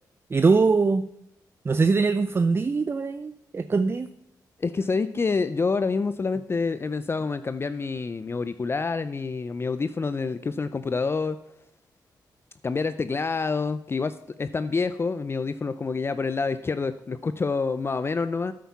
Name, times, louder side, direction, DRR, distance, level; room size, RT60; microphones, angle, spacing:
voice 1, 0.3-1.0 1.7-4.1, right 4 dB, 30° right, 13 dB, 0.4 m, -22 dB
voice 2, 4.6-11.4 12.6-18.5, left 4 dB, 30° left, 12 dB, 0.5 m, -27 dB
9.3 x 8.5 x 5.9 m, 0.79 s
cardioid pair, 75°, 8 cm